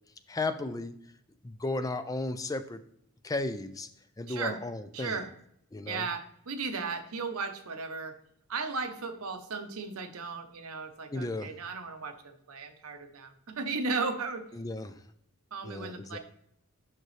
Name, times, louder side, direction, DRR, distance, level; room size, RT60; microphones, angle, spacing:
voice 1, 0.3-0.9 1.4-2.8 3.2-3.9 4.2-5.2 5.7-6.1 11.1-11.5 14.5-15.0 15.6-16.2, left 2 dB, 15° left, 10 dB, 0.4 m, -34 dB
voice 2, 4.3-4.6 4.9-5.3 5.9-8.1 8.5-14.5 15.5-16.2, right 4 dB, 80° right, 7 dB, 0.8 m, -35 dB
6.6 x 5.9 x 3.2 m, 0.70 s
head